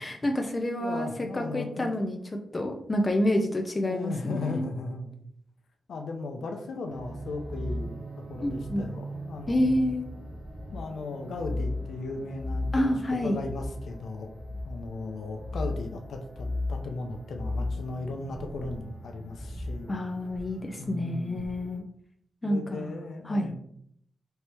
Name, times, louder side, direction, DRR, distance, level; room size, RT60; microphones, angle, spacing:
voice 1, 0.0-2.2 2.5-4.7 8.4-8.8 9.5-10.1 12.7-13.4 19.9-21.8 22.4-23.5, left 1 dB, 25° left, 3 dB, 0.5 m, -28 dB
voice 2, 0.8-1.9 3.8-5.2 5.9-8.0 8.3-9.9 10.7-14.3 14.6-19.9 20.8-21.5 22.4-23.5, left 3 dB, 85° left, 3 dB, 0.6 m, -36 dB
sound 1, 6.9-21.8, left 1 dB, 70° right, 1.4 m, -37 dB
4.4 x 2.9 x 3.4 m, 0.68 s
wide cardioid pair, 100°, 0 cm